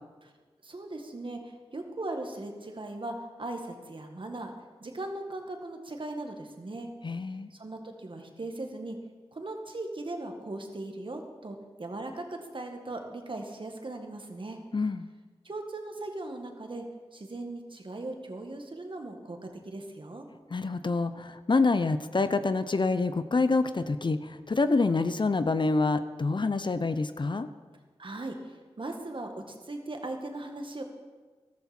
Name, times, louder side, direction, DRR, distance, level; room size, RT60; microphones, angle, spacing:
voice 1, 0.6-4.5 4.8-6.9 7.5-9.0 9.3-14.6 15.4-16.8 17.1-20.3 28.0-30.8, right 2 dB, 50° right, 4 dB, 1.9 m, -38 dB
voice 2, 7.0-7.5 14.7-15.1 20.5-27.5, left 3 dB, 45° left, 12 dB, 0.7 m, -27 dB
13.0 x 13.0 x 4.4 m, 1.4 s
cardioid pair, 45°, 11 cm